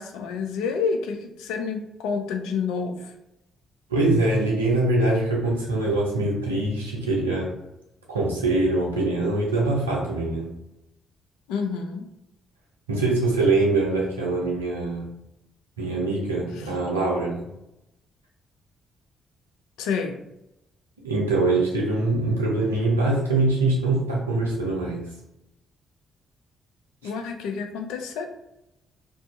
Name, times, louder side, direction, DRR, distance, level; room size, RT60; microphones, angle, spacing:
voice 1, 0.0-3.1 11.5-12.1 16.6-16.7 19.8-20.2 27.0-28.3, left 5 dB, 70° left, 5 dB, 0.3 m, -29 dB
voice 2, 3.9-7.5 8.1-10.5 12.9-15.1 15.8-17.4 21.0-25.1, right 2 dB, 85° right, -2 dB, 0.5 m, -23 dB
2.4 x 2.3 x 2.4 m, 0.87 s
figure-of-eight pair, 40°, 0 cm